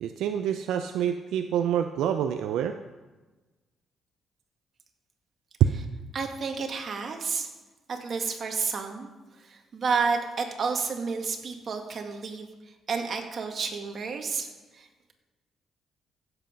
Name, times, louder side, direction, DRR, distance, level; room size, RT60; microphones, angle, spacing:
voice 1, 0.0-2.8, right 9 dB, 85° right, 7 dB, 0.5 m, -27 dB
voice 2, 6.1-7.5 7.9-15.1, right 5 dB, 50° right, 3 dB, 2.0 m, -31 dB
15.5 x 7.9 x 5.3 m, 1.2 s
cardioid pair, 90°, 0 cm